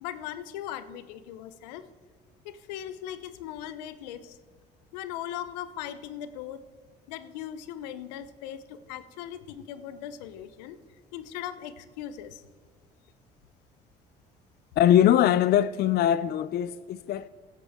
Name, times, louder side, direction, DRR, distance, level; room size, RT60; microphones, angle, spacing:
voice 1, 0.0-1.8 2.4-4.4 4.9-6.6 7.1-10.8 11.1-12.4, left 11 dB, 85° left, 0.7 m, -39 dB
voice 2, 14.8-17.3, left 11 dB, 50° left, 0.4 m, -22 dB
16.5 x 8.4 x 3.6 m
hypercardioid pair, 60°, 21 cm